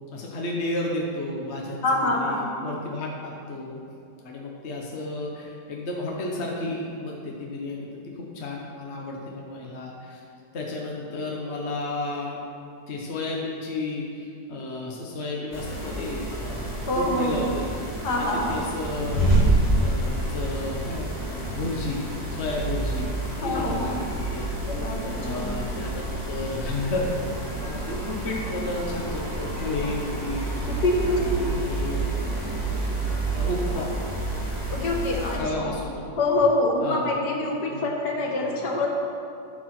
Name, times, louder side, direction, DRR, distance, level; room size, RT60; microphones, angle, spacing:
voice 1, 0.1-3.8 4.2-10.2 10.5-12.4 12.9-17.8 18.3-19.3 19.8-22.0 22.4-24.8 25.1-27.1 27.6-32.1 33.3-33.9 35.3-36.1 36.8-37.1 37.7-37.9, left 2 dB, 45° left, -2 dB, 1.2 m, -32 dB
voice 2, 1.8-2.5 16.9-17.3 18.0-18.7 23.4-23.9 24.7-25.7 30.7-31.4 34.7-35.6 36.2-38.9, left 2 dB, 75° left, -1 dB, 2.0 m, -25 dB
sound 1, 15.5-35.4, right 2 dB, 25° left, 1.9 m, -28 dB
13.0 x 4.8 x 5.9 m, 2.5 s
omnidirectional pair, 1.8 m